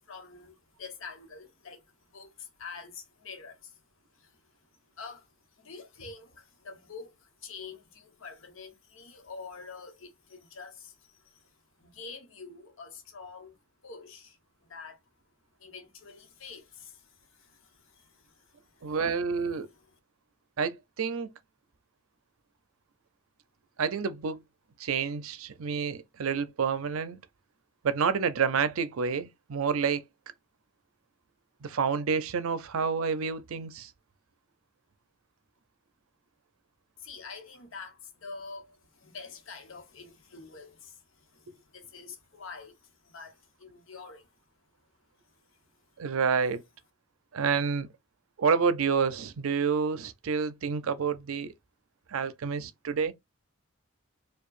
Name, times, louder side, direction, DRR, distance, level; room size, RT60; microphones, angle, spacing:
voice 1, 0.0-3.8 4.1-4.5 5.0-11.5 11.8-13.6 13.8-14.4 14.7-15.0 15.6-19.0 19.7-19.9 37.0-44.3, left 4 dB, 75° left, 1.0 m, -47 dB
voice 2, 18.8-19.7 20.6-21.3 23.8-24.4 24.8-27.2 27.8-30.0 31.6-33.9 46.0-46.6 47.3-47.9 48.4-51.5 52.1-53.1, right 6 dB, 85° right, 0.5 m, -28 dB
4.6 x 2.3 x 2.4 m
head